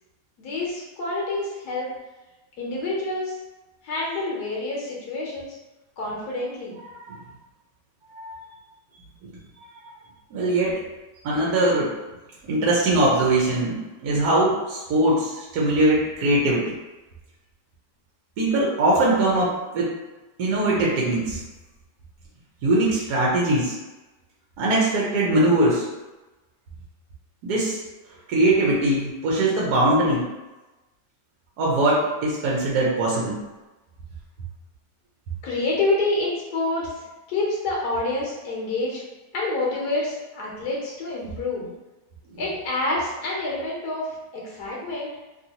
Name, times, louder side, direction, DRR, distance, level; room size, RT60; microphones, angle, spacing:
voice 1, 0.4-1.9 2.6-3.4 3.8-5.5 6.0-6.8 35.4-39.0 39.3-41.7 42.4-45.1, left 2 dB, 70° left, -3 dB, 1.2 m, -27 dB
voice 2, 10.3-10.8 11.2-11.9 12.4-16.7 18.4-19.9 20.4-21.4 22.6-23.7 24.6-25.9 27.4-27.8 28.3-30.3 31.6-33.4 42.3-42.4, right 1 dB, 70° right, -4 dB, 1.1 m, -21 dB
3.0 x 2.6 x 2.8 m, 1.1 s
omnidirectional pair, 1.8 m